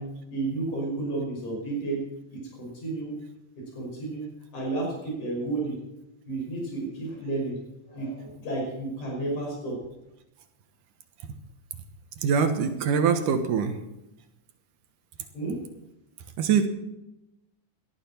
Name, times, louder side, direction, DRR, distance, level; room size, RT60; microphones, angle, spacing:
voice 1, 0.0-3.2 3.6-5.8 6.3-7.6 7.9-9.8 15.3-15.6, right 2 dB, 60° left, -2 dB, 7.3 m, -32 dB
voice 2, 12.2-13.8 16.4-16.7, right 6 dB, 75° right, 8 dB, 2.7 m, -23 dB
18.0 x 13.0 x 4.4 m, 0.91 s
omnidirectional pair, 3.7 m